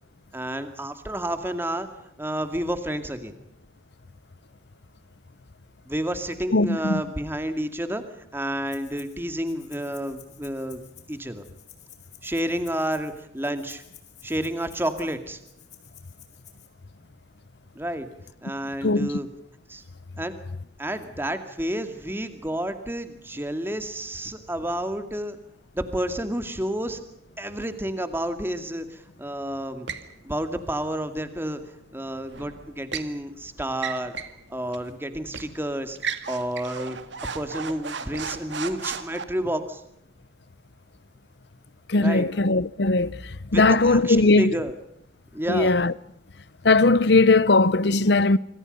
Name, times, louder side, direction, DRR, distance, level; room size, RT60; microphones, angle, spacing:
voice 1, 0.3-1.9 2.2-3.3 5.9-8.0 8.3-10.8 11.1-11.4 12.2-13.8 14.2-15.4 17.7-18.1 18.4-19.3 19.7-19.8 20.2-20.3 20.8-25.4 25.7-27.0 27.4-29.9 30.2-31.6 31.9-34.1 34.5-36.0 36.3-37.0 37.3-39.8 41.9-42.3 43.5-44.7 45.3-45.8, right 1 dB, 10° right, 2.3 m, -30 dB
voice 2, 6.5-7.0 18.8-19.1 41.9-43.2 43.5-44.5 45.5-45.9 46.6-48.4, left 3 dB, 65° left, 0.8 m, -19 dB
Rattle (instrument), 8.7-9.2 9.5-16.7, left 11 dB, 40° left, 4.2 m, -52 dB
sound 1, 29.9-30.1 32.3-33.1 33.7-34.4 34.7-34.9 35.3-35.5 36.0-39.2, right 6 dB, 75° right, 2.0 m, -34 dB
26.5 x 26.0 x 5.5 m
head